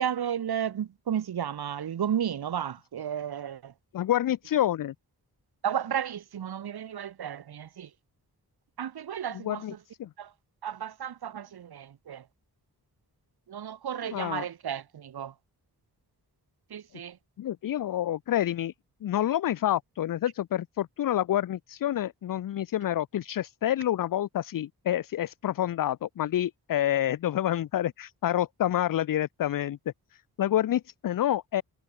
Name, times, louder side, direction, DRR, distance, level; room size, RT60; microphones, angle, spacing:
voice 1, 0.0-3.7 5.6-7.9 8.8-9.8 10.2-10.3 10.6-12.2 13.5-15.3 16.7-17.2, right 9 dB, 85° right, 1.0 m, -33 dB
voice 2, 3.9-4.9 9.3-9.7 10.0-10.1 14.1-14.5 17.4-18.7 19.0-29.8 30.1-31.6, left 12 dB, 60° left, 0.5 m, -28 dB
wide cardioid pair, 125°, 37 cm